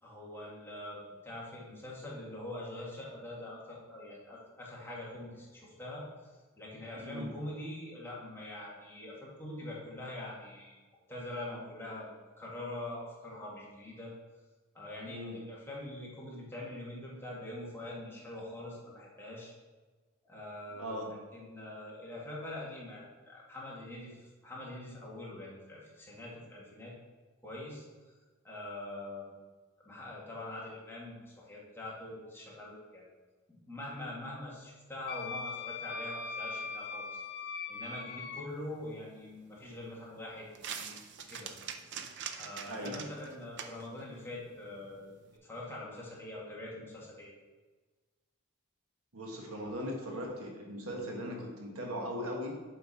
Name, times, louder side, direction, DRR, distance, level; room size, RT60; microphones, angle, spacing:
voice 1, 0.0-10.8 11.1-14.1 14.7-19.5 20.2-21.0 21.3-26.9 27.4-27.8 28.4-29.3 29.8-33.1 33.5-37.2 37.7-40.9 41.2-41.5 42.4-45.1 45.4-47.3, left 1 dB, 10° left, -5 dB, 1.9 m, -44 dB
voice 2, 7.0-7.3 15.1-15.4 20.7-21.1 42.7-43.0 49.1-52.6, equal, 85° right, 0 dB, 1.6 m, -39 dB
Wind instrument woodwind instrument, 35.1-38.4, left 4 dB, 50° left, 0.6 m, -40 dB
sound 1, 38.5-45.4, right 7 dB, 55° right, 0.6 m, -46 dB
7.8 x 5.4 x 4.2 m, 1.4 s
head